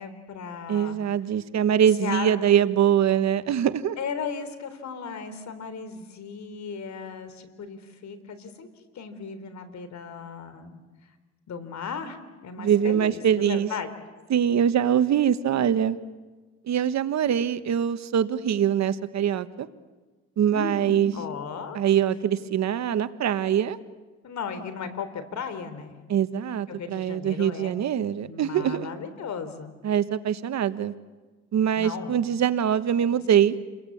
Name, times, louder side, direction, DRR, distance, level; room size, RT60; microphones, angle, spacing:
voice 1, 0.0-1.0 1.8-2.3 4.0-8.7 9.0-10.8 11.5-13.9 20.5-21.8 24.2-26.0 26.7-27.7 28.2-29.7 31.8-32.2 33.4-33.5, left 6 dB, 65° left, 11 dB, 3.7 m, -36 dB
voice 2, 0.7-4.0 12.6-13.7 14.3-16.0 16.7-19.7 20.4-21.1 21.7-23.8 26.1-28.9 29.8-30.9 31.5-33.5, right 9 dB, 60° right, 12 dB, 1.3 m, -23 dB
29.5 x 22.0 x 8.6 m, 1.3 s
cardioid pair, 90°, 30 cm